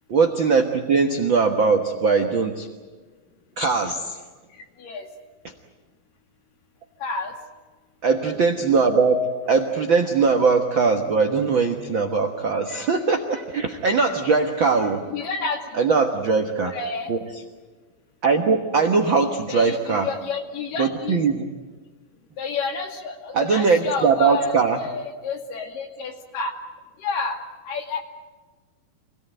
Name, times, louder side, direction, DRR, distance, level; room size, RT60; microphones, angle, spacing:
voice 1, 0.1-2.7 3.6-4.2 8.0-15.0 15.7-16.7 17.1-17.2 18.2-20.1 20.8-21.4 23.3-24.8, right 4 dB, 65° right, 4 dB, 1.2 m, -20 dB
voice 2, 7.0-7.3 15.1-15.6 16.7-17.1 18.8-19.2 19.5-21.2 22.4-26.5 27.0-27.4 27.6-28.0, left 4 dB, 65° left, 3 dB, 3.9 m, -30 dB
27.0 x 18.5 x 9.2 m, 1.3 s
omnidirectional pair, 4.3 m